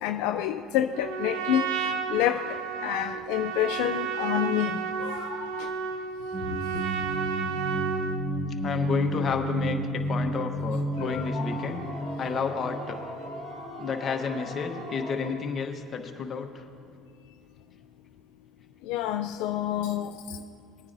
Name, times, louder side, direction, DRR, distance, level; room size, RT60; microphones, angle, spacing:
voice 1, 0.0-2.4 2.8-5.7 11.0-11.6 18.9-20.1, left 11 dB, 75° left, 6 dB, 0.4 m, -28 dB
Trumpet, 0.9-8.3, right 6 dB, 80° right, 0.9 m, -32 dB
sound 1, 6.3-13.7, right 1 dB, 10° right, 1.7 m, -32 dB
voice 2, 8.6-11.8 12.2-13.0 13.8-16.6, left 5 dB, 40° left, 4 dB, 1.1 m, -31 dB
sound 2, 10.9-15.3, equal, 60° right, 3.0 m, -40 dB
19.5 x 9.5 x 2.7 m, 2.3 s
supercardioid pair, 90°, 0 cm